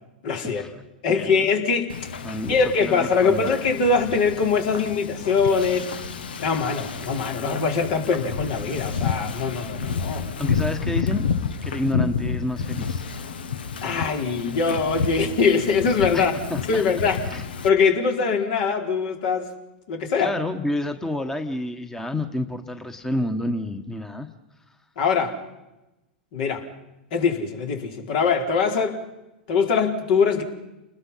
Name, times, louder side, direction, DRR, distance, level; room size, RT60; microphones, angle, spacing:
voice 1, 0.2-0.6 1.0-2.0 2.5-5.9 6.4-10.3 13.8-16.3 16.7-19.5 19.9-20.3 25.0-25.4 26.3-26.6 27.1-29.0 29.5-30.4, left 5 dB, 60° left, 3 dB, 4.4 m, -22 dB
voice 2, 1.1-1.5 2.2-2.5 2.8-3.5 10.4-11.3 11.6-13.1 16.1-16.8 17.2-17.4 20.2-24.3, left 1 dB, 10° left, 7 dB, 1.5 m, -29 dB
Wind / Ocean, 1.9-17.7, left 6 dB, 80° left, 1.3 m, -30 dB
29.5 x 20.5 x 5.8 m, 0.99 s
hypercardioid pair, 105°, 5 cm